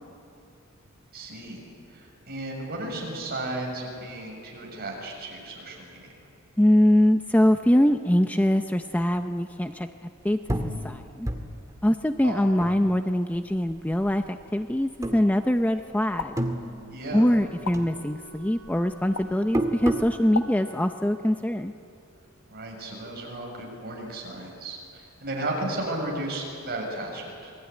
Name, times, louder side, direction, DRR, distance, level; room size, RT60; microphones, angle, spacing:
voice 1, 1.1-6.1 12.2-12.4 16.9-17.3 22.5-27.5, right 1 dB, 45° right, -1 dB, 7.0 m, -34 dB
voice 2, 6.6-9.9 10.2-11.3 11.8-16.3 17.1-21.7, left 1 dB, 5° left, 7 dB, 0.6 m, -23 dB
sound 1, 10.5-13.4 13.7-14.5 15.0-15.9 16.1-17.5 17.7-20.2, right 1 dB, 15° right, 1.9 m, -32 dB
sound 2, 16.2-16.3 17.6-17.8 19.1-19.3 20.3-20.5, left 4 dB, 75° left, 1.2 m, -31 dB
Wind instrument woodwind instrument, 17.4-21.8, right 2 dB, 75° right, 3.2 m, -50 dB
27.5 x 21.0 x 9.9 m, 2.5 s
head